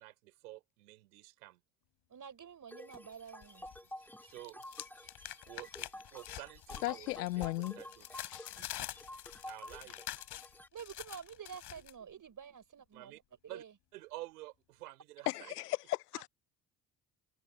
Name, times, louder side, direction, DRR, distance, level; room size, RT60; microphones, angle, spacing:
voice 1, 0.0-1.6 3.8-4.6 5.5-8.1 8.6-9.0 9.5-10.1 12.1-12.2 12.8-13.2 13.5-13.6 13.9-15.5, right 18 dB, 80° right, 4.9 m, -51 dB
voice 2, 2.1-3.7 10.7-13.1 13.4-13.7 16.1-16.2, right 7 dB, 40° right, 5.4 m, -49 dB
sound 1, 2.7-10.7, left 1 dB, 5° left, 5.9 m, -51 dB
sound 2, 2.9-3.8 4.1-11.9, left 14 dB, 60° left, 4.7 m, -46 dB
voice 3, 6.8-7.8 8.3-8.6 15.3-16.3, left 17 dB, 80° left, 0.9 m, -36 dB
figure-of-eight pair, 50°, 46 cm